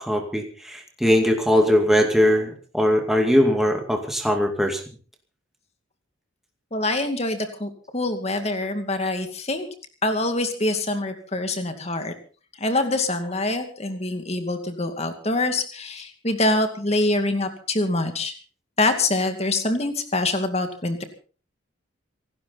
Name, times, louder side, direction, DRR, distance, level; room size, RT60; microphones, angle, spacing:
voice 1, 0.0-4.8, equal, ahead, 2 dB, 2.3 m, -20 dB
voice 2, 6.7-9.7 10.0-12.1 12.6-18.3 18.8-21.0, left 2 dB, 30° left, 7 dB, 2.3 m, -25 dB
27.0 x 12.0 x 4.2 m, 0.39 s
head